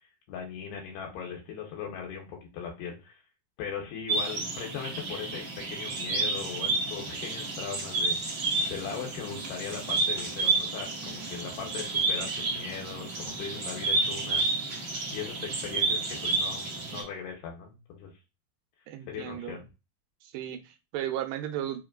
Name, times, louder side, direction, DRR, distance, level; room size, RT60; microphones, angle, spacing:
voice 1, 0.3-3.2 3.6-14.4 14.7-14.8 15.1-18.1 19.1-19.7, left 7 dB, 85° left, 2.4 m, -39 dB
sound 1, 4.1-17.0, right 3 dB, 50° right, 1.4 m, -30 dB
voice 2, 18.9-19.6 20.3-21.8, right 11 dB, 90° right, 2.3 m, -35 dB
5.1 x 2.9 x 2.4 m
omnidirectional pair, 3.8 m